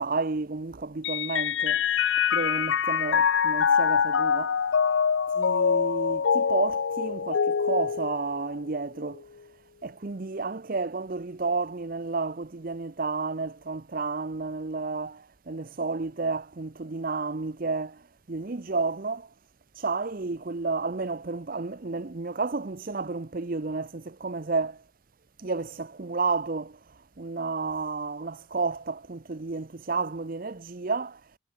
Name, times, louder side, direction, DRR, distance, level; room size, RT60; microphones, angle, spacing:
voice 1, 0.0-1.8 2.3-4.6 5.4-9.2 9.8-19.3 19.8-24.8 25.4-31.2, right 3 dB, 45° right, 0.7 m, -31 dB
Mallet percussion, 1.0-8.8, left 6 dB, 70° left, 0.5 m, -24 dB
head